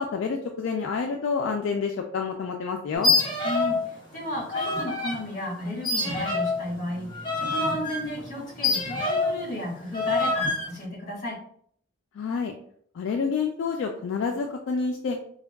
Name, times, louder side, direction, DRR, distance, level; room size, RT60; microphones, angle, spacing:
voice 1, 0.0-3.1 12.1-12.5 12.9-15.2, left 5 dB, 70° left, 2 dB, 0.3 m, -28 dB
sound 1, 2.9-3.8 4.1-5.2 5.8-9.4 9.9-10.7, left 3 dB, 25° left, 0.6 m, -26 dB
voice 2, 3.4-11.4, left 1 dB, 40° left, -5 dB, 1.5 m, -33 dB
3.5 x 2.2 x 2.2 m, 0.62 s
head